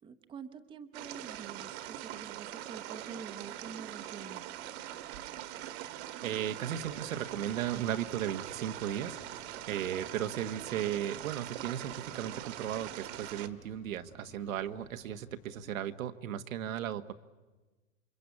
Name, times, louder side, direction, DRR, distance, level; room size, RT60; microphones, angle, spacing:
voice 1, 0.0-4.8, right 6 dB, 10° right, 7 dB, 0.9 m, -47 dB
sound 1, 0.9-13.5, right 13 dB, 55° right, 1.5 m, -43 dB
voice 2, 6.2-17.1, right 10 dB, 85° right, 9 dB, 1.5 m, -36 dB
sound 2, 6.7-15.8, left 7 dB, 85° left, 5.2 m, -59 dB
28.0 x 24.5 x 8.5 m, 1.2 s
supercardioid pair, 155°, 39 cm